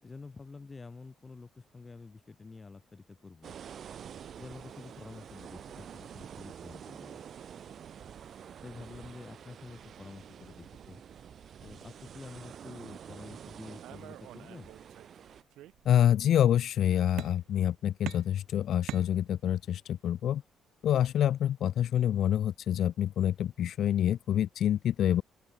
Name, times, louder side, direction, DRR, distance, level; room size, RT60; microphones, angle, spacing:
voice 1, 0.0-3.6 4.3-7.2 8.6-11.0 11.6-14.7, left 4 dB, 30° left, 6.7 m, -48 dB
sound 1, 3.4-15.4, right 8 dB, 60° right, 1.4 m, -48 dB
sound 2, 13.8-15.2 15.5-16.2 17.2-17.7 18.1-19.7, right 14 dB, 85° right, 2.7 m, -44 dB
voice 2, 15.9-20.4 20.8-25.2, left 10 dB, 70° left, 0.4 m, -27 dB
open air
cardioid pair, 90°, 0 cm